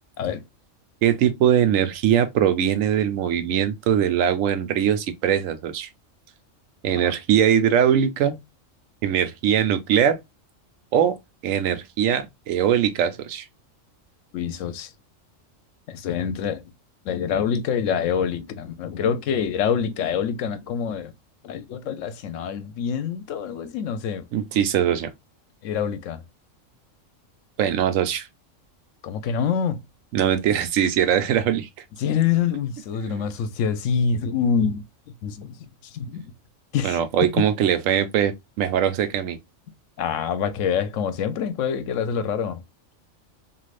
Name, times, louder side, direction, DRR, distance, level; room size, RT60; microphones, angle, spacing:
voice 1, 1.0-5.9 6.8-8.4 9.0-10.2 10.9-11.2 11.4-13.4 24.3-25.1 27.6-28.3 30.1-31.7 33.0-33.3 36.8-39.4, right 9 dB, 80° right, 1.0 m, -21 dB
voice 2, 14.3-14.9 15.9-16.7 17.1-21.1 21.4-24.2 25.6-26.2 29.0-29.8 32.0-34.8 35.2-35.5 35.9-36.2 36.7-37.0 37.4-37.5 40.0-42.6, left 7 dB, 75° left, 0.9 m, -26 dB
3.2 x 2.7 x 2.4 m
omnidirectional pair, 1.3 m